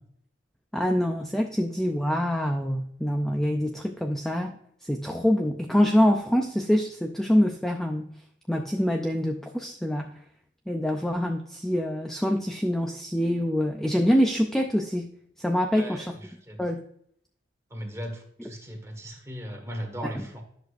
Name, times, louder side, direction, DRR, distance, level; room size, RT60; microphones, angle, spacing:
voice 1, 0.7-4.5 4.8-8.1 8.5-10.1 10.7-15.1 15.4-16.1 16.6-16.8, equal, ahead, 3 dB, 0.5 m, -25 dB
voice 2, 15.7-16.6 17.7-20.4, equal, 15° right, 2 dB, 1.5 m, -38 dB
10.5 x 6.5 x 2.5 m, 0.68 s
head